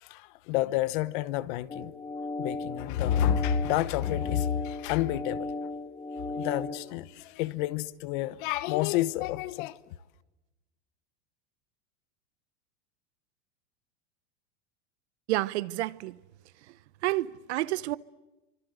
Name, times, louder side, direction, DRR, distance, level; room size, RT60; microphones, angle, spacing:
voice 1, 0.0-1.9 2.4-5.5 6.3-9.8, left 12 dB, 45° left, 1.0 m, -29 dB
sound 1, 1.7-6.8, left 2 dB, 15° left, 1.6 m, -36 dB
voice 2, 15.3-16.2 17.0-18.0, right 17 dB, 75° right, 1.0 m, -29 dB
28.0 x 25.5 x 8.0 m
supercardioid pair, 170°, 34 cm